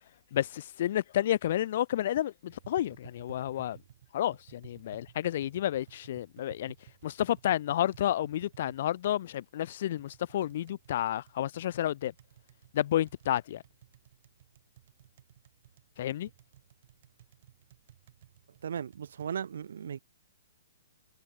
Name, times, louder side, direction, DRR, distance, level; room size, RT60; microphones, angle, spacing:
voice 1, 0.3-3.8 4.1-6.7 7.0-12.1 12.7-13.6 16.0-16.3, left 12 dB, 55° left, 2.4 m, -30 dB
Tap, 2.5-19.3, right 12 dB, 55° right, 7.8 m, -57 dB
voice 2, 18.6-20.0, right 8 dB, 70° right, 0.9 m, -36 dB
hypercardioid pair, 140°, 0 cm